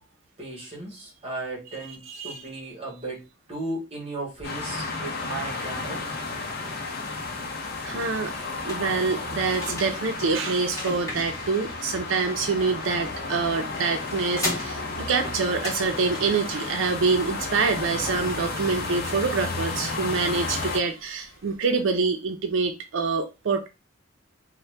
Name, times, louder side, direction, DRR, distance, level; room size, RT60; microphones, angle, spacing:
voice 1, 0.4-6.1 7.9-8.1, right 2 dB, 30° right, -1 dB, 1.2 m, -36 dB
voice 2, 1.8-2.4 7.8-8.3 8.6-23.7, right 4 dB, 85° right, 5 dB, 0.4 m, -26 dB
sound 1, 4.4-20.8, left 3 dB, 55° left, 0.6 m, -33 dB
sound 2, 8.0-21.6, left 2 dB, 15° left, 1.0 m, -39 dB
2.7 x 2.1 x 3.2 m, 0.26 s
head